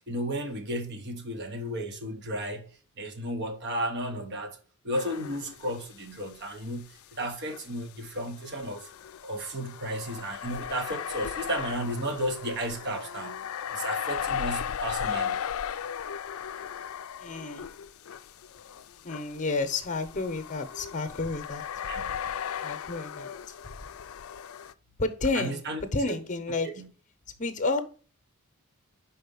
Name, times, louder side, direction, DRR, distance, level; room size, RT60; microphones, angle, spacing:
voice 1, 0.1-2.7 3.0-4.6 4.8-8.9 9.2-13.4 13.7-15.5 21.9-22.1 25.3-26.2 26.6-26.9, right 1 dB, 50° right, 1.2 m, -33 dB
sound 1, 4.9-6.1 6.3-6.4 7.5-24.7, left 8 dB, 70° left, 0.4 m, -37 dB
voice 2, 17.2-17.7 19.0-21.6 22.6-23.3 25.0-26.7 27.4-27.8, left 3 dB, 35° left, 0.9 m, -30 dB
5.3 x 4.2 x 5.3 m
head